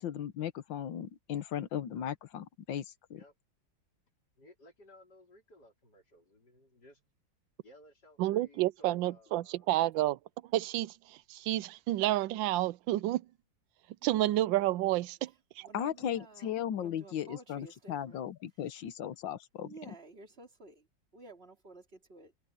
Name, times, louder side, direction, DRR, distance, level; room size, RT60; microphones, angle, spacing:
voice 1, 0.0-3.2 15.7-19.9, left 9 dB, 90° left, 1.8 m, -37 dB
voice 2, 4.4-7.0 7.6-9.7, left 1 dB, 60° left, 5.1 m, -59 dB
voice 3, 8.2-10.2 10.5-13.2 14.0-15.3 15.6-15.7, right 15 dB, 90° right, 1.3 m, -30 dB
voice 4, 14.0-14.5 15.6-18.2 18.6-18.7 19.6-20.9 21.1-22.3, right 3 dB, 30° right, 3.2 m, -53 dB
omnidirectional pair, 2.0 m